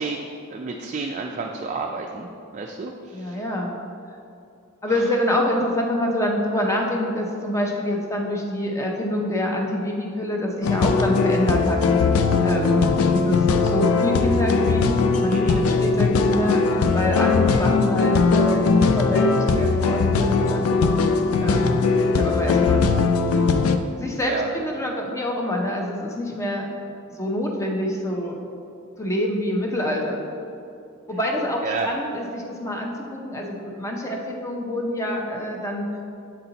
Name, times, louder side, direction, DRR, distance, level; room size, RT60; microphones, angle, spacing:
voice 1, 0.0-2.3 2.5-3.4 4.9-5.0 15.3-15.6 22.5-22.7 24.2-24.5 31.6-31.9, right 4 dB, 35° right, 1 dB, 0.3 m, -31 dB
voice 2, 3.1-3.7 4.8-11.8 12.4-12.8 13.1-20.6 21.4-21.8 22.1-22.9 24.0-26.7 27.2-28.4 29.0-30.3 31.1-35.8, left 1 dB, 15° left, 0 dB, 0.6 m, -26 dB
sound 1, 10.6-23.8, left 4 dB, 75° left, 0.4 m, -20 dB
7.6 x 4.3 x 3.9 m, 2.6 s
head